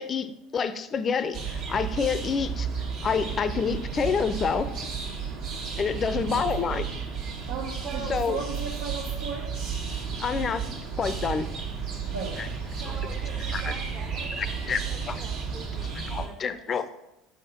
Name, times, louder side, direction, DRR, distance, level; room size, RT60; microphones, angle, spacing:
voice 1, 0.0-2.7 3.0-4.7 5.8-6.8 8.1-8.4 10.2-10.6 11.0-11.5 12.9-13.0 13.5-13.7 14.4-14.8 15.1-15.2 16.1-16.9, left 6 dB, 35° left, 13 dB, 0.5 m, -28 dB
sound 1, 1.3-16.3, right 6 dB, 60° right, 1.5 m, -33 dB
voice 2, 6.1-6.7 7.5-9.7 12.1-12.6, right 4 dB, 80° right, -3 dB, 0.9 m, -36 dB
voice 3, 7.8-8.4 12.8-15.9 16.2-16.9, right 4 dB, 40° right, -2 dB, 1.1 m, -43 dB
6.0 x 3.6 x 5.7 m, 0.90 s
hypercardioid pair, 70°, 0 cm